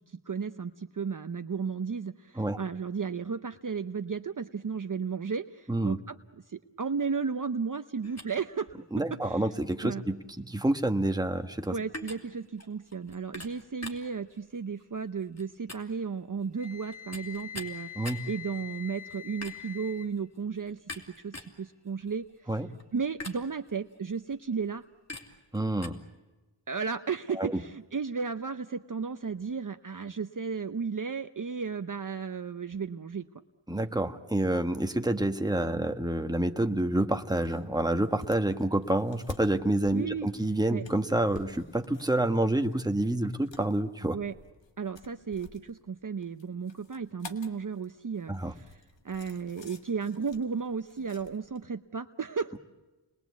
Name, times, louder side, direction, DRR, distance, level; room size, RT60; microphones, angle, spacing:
voice 1, 0.1-6.2 6.5-8.8 9.1-9.4 9.8-10.0 11.7-20.8 21.2-22.5 22.9-24.8 26.7-33.3 39.9-40.8 44.1-44.3 44.8-52.6, right 5 dB, 45° right, 8 dB, 0.8 m, -34 dB
sound 1, 8.0-25.9, left 2 dB, 35° left, 3.0 m, -47 dB
voice 2, 8.9-11.7 18.0-18.2 22.5-22.7 25.5-26.0 27.3-27.6 33.7-44.2 48.3-48.5, right 1 dB, 10° right, 6 dB, 1.4 m, -28 dB
Wind instrument woodwind instrument, 16.6-20.1, left 10 dB, 15° left, 2.0 m, -44 dB
sound 2, 37.2-51.6, left 3 dB, 75° left, 1.9 m, -51 dB
30.0 x 21.5 x 8.2 m, 1.2 s
wide cardioid pair, 85°, 44 cm